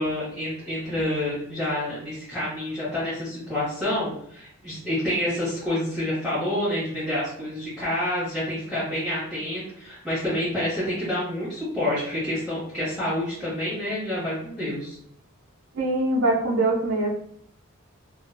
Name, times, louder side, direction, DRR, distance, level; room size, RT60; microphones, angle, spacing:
voice 1, 0.0-15.0, left 1 dB, ahead, -12 dB, 0.8 m, -28 dB
voice 2, 15.7-17.1, right 2 dB, 70° right, -6 dB, 0.5 m, -23 dB
2.3 x 2.2 x 2.4 m, 0.68 s
head